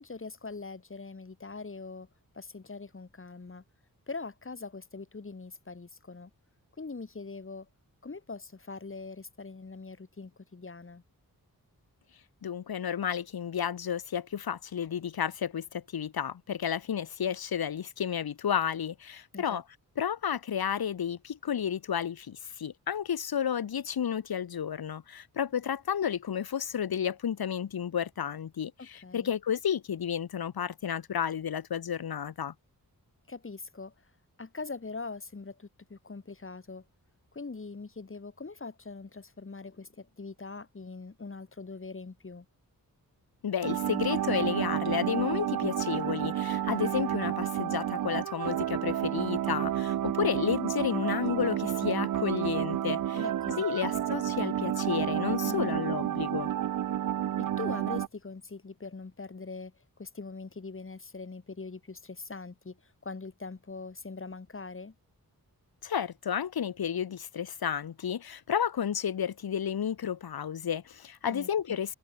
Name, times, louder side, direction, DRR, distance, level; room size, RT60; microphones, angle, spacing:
voice 1, 0.0-2.1 2.3-3.6 4.1-6.3 6.8-7.7 8.0-11.0 19.3-19.6 28.8-29.3 33.3-33.9 34.4-36.8 37.3-42.5 53.1-53.9 55.4-55.8 57.4-64.9 71.2-71.8, left 4 dB, 35° left, 8.0 m, -42 dB
voice 2, 12.4-19.6 20.0-32.5 43.4-53.2 53.6-56.5 65.8-71.9, left 8 dB, 80° left, 1.4 m, -32 dB
sound 1, 43.6-58.1, right 11 dB, 60° right, 0.5 m, -30 dB
wide cardioid pair, 170°, 36 cm